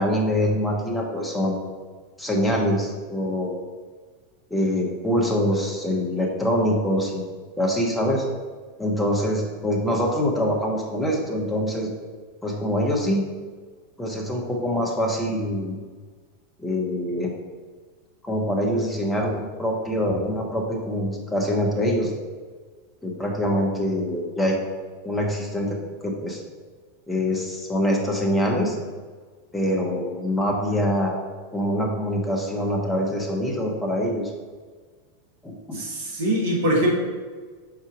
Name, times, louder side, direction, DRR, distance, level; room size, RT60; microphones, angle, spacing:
voice 1, 0.0-1.6 2.2-3.6 4.5-7.3 7.6-8.2 8.8-11.9 12.4-13.2 14.0-15.8 16.6-17.3 18.2-19.3 19.6-22.1 23.0-24.6 25.0-25.8 26.0-26.4 27.1-28.8 29.5-31.2 31.5-34.3 35.4-35.8, equal, 5° left, -1 dB, 1.2 m, -24 dB
voice 2, 35.7-36.9, right 1 dB, 65° right, -2 dB, 1.6 m, -23 dB
4.7 x 4.4 x 5.0 m, 1.5 s
figure-of-eight pair, 90°, 0 cm